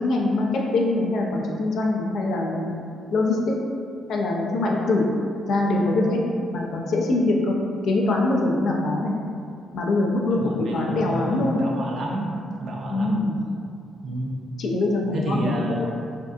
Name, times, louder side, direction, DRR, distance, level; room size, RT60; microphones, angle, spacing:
voice 1, 0.0-2.7 3.1-3.5 4.1-5.1 5.5-6.2 6.5-7.6 7.8-9.1 9.7-11.7 12.9-13.3 14.6-15.9, left 2 dB, 70° left, -1 dB, 0.4 m, -23 dB
voice 2, 10.3-12.3 12.6-13.2 14.0-14.4 15.1-15.9, right 1 dB, 60° right, -1 dB, 0.4 m, -30 dB
2.6 x 2.3 x 2.3 m, 2.3 s
cardioid pair, 90°, 0 cm